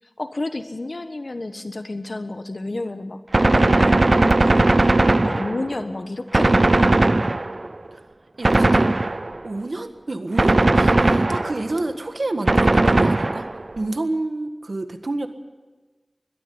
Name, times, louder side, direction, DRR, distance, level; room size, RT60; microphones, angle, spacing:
voice 1, 0.2-7.4, left 2 dB, 60° left, 8 dB, 1.3 m, -31 dB
Gunshot gunfire, 3.3-5.8 6.3-7.8 8.4-9.5 10.4-11.8 12.5-13.7, right 2 dB, 50° right, 0.5 m, -18 dB
voice 2, 8.4-8.9 9.4-13.5 13.8-15.3, right 2 dB, 65° right, 8 dB, 1.6 m, -28 dB
21.0 x 13.0 x 9.5 m, 1.3 s
wide cardioid pair, 60°, 0 cm